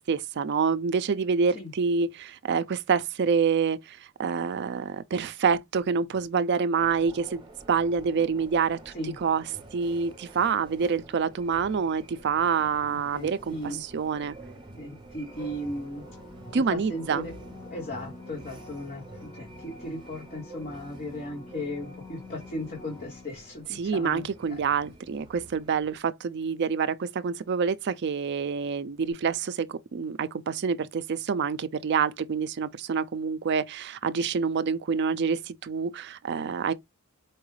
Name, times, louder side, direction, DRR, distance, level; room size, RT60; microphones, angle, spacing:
voice 1, 0.0-8.9 9.2-9.4 9.7-14.4 16.5-17.3 23.8-36.7, right 6 dB, 50° right, 0.4 m, -27 dB
sound 1, 6.8-26.0, right 2 dB, 20° right, 0.9 m, -49 dB
voice 2, 12.8-13.8 14.6-16.1 16.5-17.3 17.6-24.6, left 1 dB, 40° left, 1.2 m, -37 dB
sound 2, 15.1-23.8 29.1-29.2, left 2 dB, 20° left, 1.1 m, -48 dB
4.5 x 2.3 x 3.1 m
head